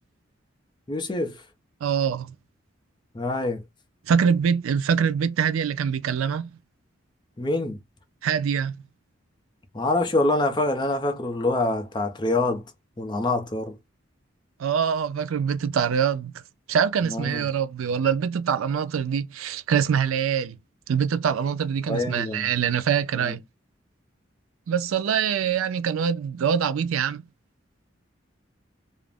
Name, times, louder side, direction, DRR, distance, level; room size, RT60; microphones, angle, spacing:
voice 1, 0.9-1.4 3.1-3.6 7.4-7.8 9.7-12.6 13.0-13.8 17.1-17.4 21.9-22.5 23.2-23.3, left 2 dB, 20° left, 0.4 m, -25 dB
voice 2, 1.8-2.3 4.1-6.6 8.2-8.8 14.6-16.3 16.7-20.6 20.9-23.4 24.7-27.2, right 7 dB, 90° right, 0.4 m, -24 dB
2.4 x 2.0 x 3.3 m
head